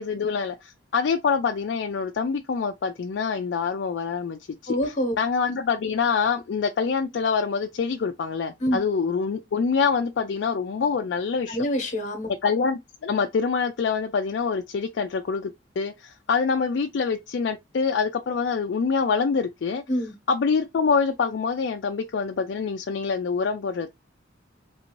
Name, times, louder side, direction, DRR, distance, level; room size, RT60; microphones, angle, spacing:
voice 1, 0.0-4.8 5.2-11.6 12.4-15.5 15.8-19.8 20.3-23.9, left 5 dB, 60° left, 0.4 m, -25 dB
voice 2, 4.7-5.1 8.6-8.8 11.5-12.3 19.9-20.1, equal, 40° left, 0.9 m, -26 dB
3.3 x 2.7 x 2.9 m
head